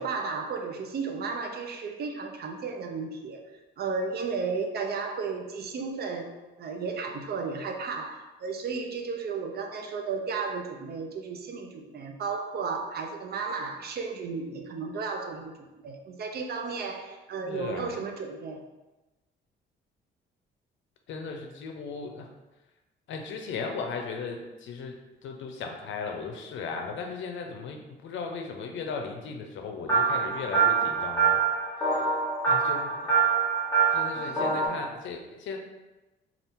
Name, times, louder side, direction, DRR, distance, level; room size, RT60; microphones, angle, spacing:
voice 1, 0.0-3.4 3.8-18.6 34.2-34.6, right 4 dB, 55° right, 4 dB, 0.5 m, -34 dB
voice 2, 17.4-18.0 21.1-22.3 23.1-25.0 25.2-31.4 31.8-32.1 32.4-33.1 33.9-35.6, left 5 dB, 75° left, 3 dB, 0.5 m, -37 dB
sound 1, 29.9-34.7, right 5 dB, 15° left, 1.1 m, -25 dB
2.7 x 2.4 x 3.5 m, 1.1 s
cardioid pair, 90°, 20 cm